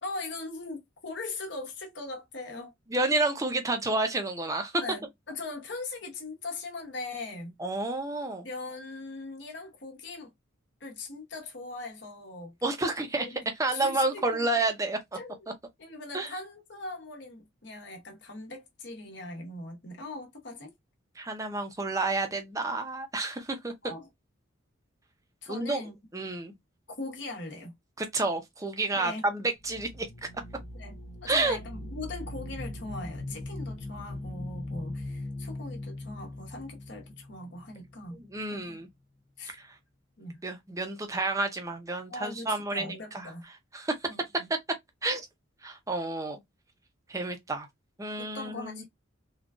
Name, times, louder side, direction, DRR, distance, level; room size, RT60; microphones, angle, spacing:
voice 1, 0.0-2.7 4.8-7.6 8.4-10.3 10.8-12.5 13.2-13.4 13.7-14.5 15.1-15.4 15.8-20.7 23.8-24.1 25.4-26.0 27.0-27.8 28.9-29.2 30.7-38.2 38.5-38.8 39.4-39.6 40.2-40.4 42.1-43.5 44.1-44.5 48.2-48.8, left 2 dB, 60° left, 1.1 m, -40 dB
voice 2, 2.9-4.8 7.6-8.5 12.6-13.3 13.6-15.0 16.1-16.3 21.2-23.7 25.5-25.8 26.1-26.5 28.0-30.1 31.3-31.6 38.1-38.9 39.6-39.7 40.4-43.3 43.7-43.9 45.0-45.3 45.6-46.4 47.1-47.7 48.0-48.8, right 2 dB, 15° right, 0.6 m, -30 dB
sound 1, 29.6-38.2, left 1 dB, 30° left, 0.6 m, -40 dB
3.7 x 2.3 x 2.3 m
head